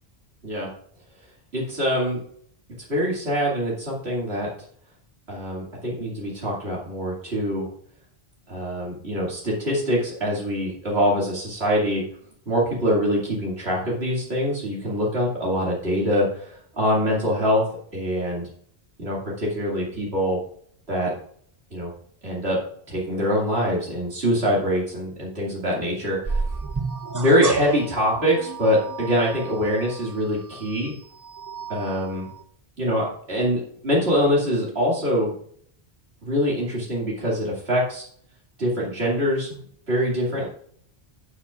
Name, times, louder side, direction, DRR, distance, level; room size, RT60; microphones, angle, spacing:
voice 1, 1.5-2.2 2.9-4.5 5.3-7.7 8.5-12.0 12.5-17.7 17.9-18.5 19.0-20.4 20.9-21.1 21.7-21.9 22.2-26.4 27.1-30.9 31.7-32.3 32.8-35.3 36.2-38.1 38.6-40.5, equal, 80° right, -5 dB, 2.7 m, -24 dB
sound 1, 26.3-32.4, right 4 dB, 25° right, 0.4 m, -32 dB
11.5 x 8.5 x 2.4 m, 0.63 s
omnidirectional pair, 1.1 m